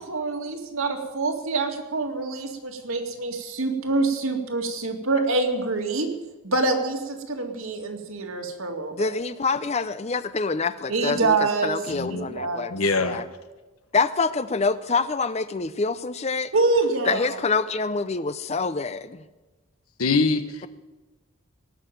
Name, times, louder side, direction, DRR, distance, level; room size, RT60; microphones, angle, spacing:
voice 1, 0.1-6.1 6.4-9.1 10.9-11.8 12.1-12.8 16.5-17.4, right 3 dB, 75° right, 3 dB, 2.2 m, -26 dB
voice 2, 8.9-12.7 13.0-13.2 13.9-16.5 17.1-19.2, left 4 dB, 30° left, 14 dB, 0.5 m, -26 dB
voice 3, 11.9-12.3 12.7-13.2 20.0-20.5, left 3 dB, 85° left, 10 dB, 1.2 m, -23 dB
19.0 x 6.8 x 9.0 m, 1.2 s
head